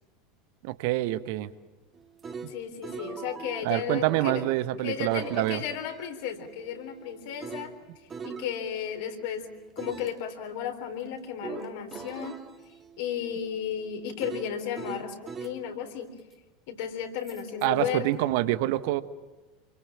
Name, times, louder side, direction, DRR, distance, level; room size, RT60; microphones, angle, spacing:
voice 1, 0.6-1.5 2.4-2.5 3.6-5.6 17.6-19.0, right 16 dB, 55° right, 14 dB, 1.3 m, -26 dB
sound 1, 1.9-4.6 5.1-9.2 9.8-10.1 11.4-15.6 17.3-17.7, right 5 dB, 25° right, 2.4 m, -42 dB
voice 2, 2.5-4.4 4.8-7.7 8.2-9.5 9.8-12.4 13.0-16.1 16.7-18.2, left 8 dB, 55° left, 5 dB, 3.8 m, -34 dB
28.5 x 23.5 x 7.5 m, 1.2 s
figure-of-eight pair, 75°, 0 cm